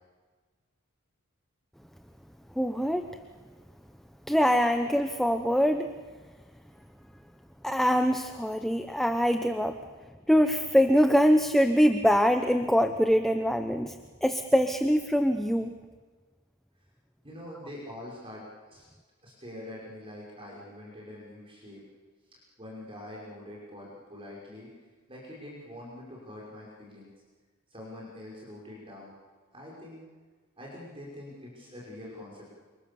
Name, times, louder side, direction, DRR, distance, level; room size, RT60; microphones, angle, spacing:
voice 1, 2.5-3.2 4.3-5.9 7.6-9.8 10.3-15.8, equal, ahead, 6 dB, 0.9 m, -24 dB
voice 2, 17.2-18.9 19.2-21.8 22.6-24.7 25.1-27.1 27.7-29.1 29.5-30.0 30.6-32.5, left 1 dB, 25° right, -4 dB, 5.9 m, -44 dB
29.0 x 26.5 x 7.1 m, 1.4 s
head